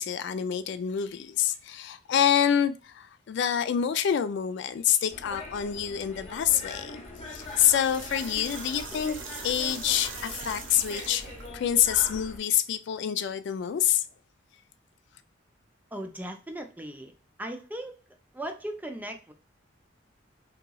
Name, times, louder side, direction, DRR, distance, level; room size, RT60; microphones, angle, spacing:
voice 1, 0.0-7.0 7.3-9.2 9.4-11.2 11.5-14.1, left 9 dB, 65° left, 0.3 m, -26 dB
sound 1, 5.1-12.4, left 2 dB, 35° left, 0.7 m, -42 dB
sound 2, 7.1-11.5, right 5 dB, 80° right, 0.7 m, -42 dB
voice 2, 15.9-17.1 17.4-17.9 18.3-19.3, right 1 dB, 10° right, 0.4 m, -37 dB
3.8 x 2.9 x 2.3 m
head